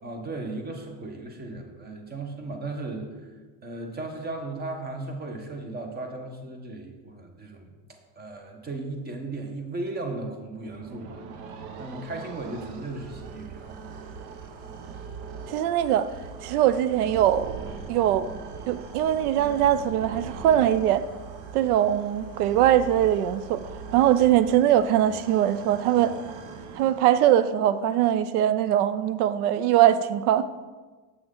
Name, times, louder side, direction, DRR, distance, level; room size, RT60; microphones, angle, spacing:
voice 1, 0.0-3.3 3.6-7.7 8.1-11.3 11.8-13.7, right 2 dB, 20° right, 4 dB, 1.0 m, -36 dB
sound 1, 10.5-27.5, right 5 dB, 60° right, 0.8 m, -41 dB
voice 2, 15.5-16.1 16.4-17.5 17.9-18.3 18.7-21.0 21.5-23.6 23.9-26.1 26.7-30.5, right 11 dB, 90° right, 14 dB, 0.5 m, -21 dB
7.6 x 6.0 x 3.8 m, 1.3 s
supercardioid pair, 130°, 43 cm